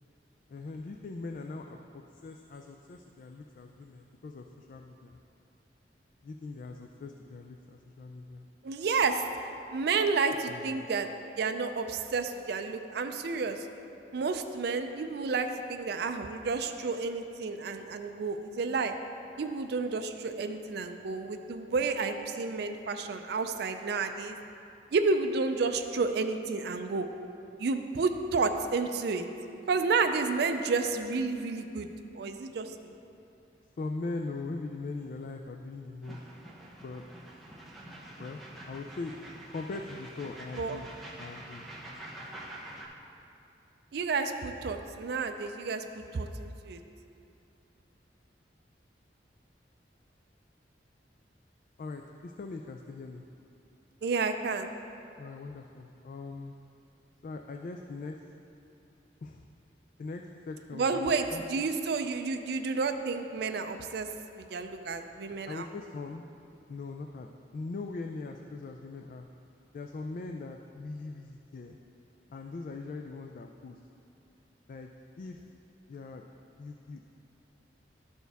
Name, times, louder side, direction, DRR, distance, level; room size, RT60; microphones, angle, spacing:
voice 1, 0.5-5.2 6.2-8.5 10.3-10.9 33.8-36.2 36.8-37.0 38.2-38.4 38.7-39.1 39.5-40.9 41.2-41.6 51.8-53.2 55.2-56.5 57.2-58.2 59.2-59.4 60.0-61.6 65.5-66.2 66.7-69.3 69.7-71.8 72.3-73.8 74.7-74.9 75.2-75.4 75.9-76.2 76.6-77.1, left 3 dB, 50° left, 3 dB, 0.3 m, -41 dB
voice 2, 8.6-9.3 9.7-11.1 11.4-13.7 14.1-18.9 19.4-24.4 24.9-27.1 27.6-29.2 29.7-31.9 32.1-33.0 40.6-40.8 43.9-45.8 46.1-46.8 54.0-54.7 60.7-64.1 64.4-65.7, right 4 dB, 65° right, 7 dB, 0.4 m, -30 dB
sound 1, 36.0-42.9, right 1 dB, ahead, 0.8 m, -46 dB
12.0 x 4.5 x 3.4 m, 2.7 s
head